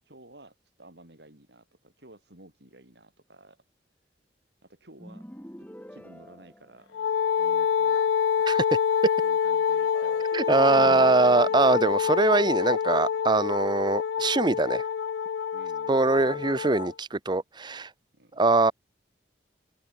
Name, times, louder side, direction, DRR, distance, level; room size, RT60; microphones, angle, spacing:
voice 1, 0.1-3.6 4.6-5.3 5.9-7.0 7.4-8.6 9.2-10.3 15.5-16.9 18.1-18.4, right 1 dB, 65° right, 5.2 m, -53 dB
sound 1, 5.0-7.4 9.8-13.1, equal, 10° left, 4.5 m, -47 dB
Wind instrument woodwind instrument, 6.9-16.9, left 7 dB, 80° left, 0.3 m, -26 dB
voice 2, 10.3-14.8 15.9-17.9 18.4-18.7, right 3 dB, 25° right, 0.7 m, -22 dB
open air
head